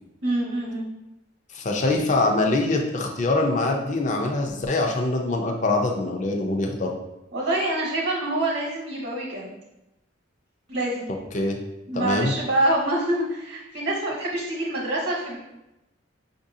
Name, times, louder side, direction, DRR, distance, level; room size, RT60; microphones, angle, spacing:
voice 1, 0.2-0.9 7.3-9.6 10.7-11.0 11.9-15.4, right 1 dB, 60° right, -4 dB, 0.9 m, -26 dB
voice 2, 1.5-6.9 11.3-11.6 11.9-12.3, left 2 dB, 40° left, 1 dB, 0.5 m, -24 dB
5.4 x 2.6 x 2.6 m, 0.94 s
head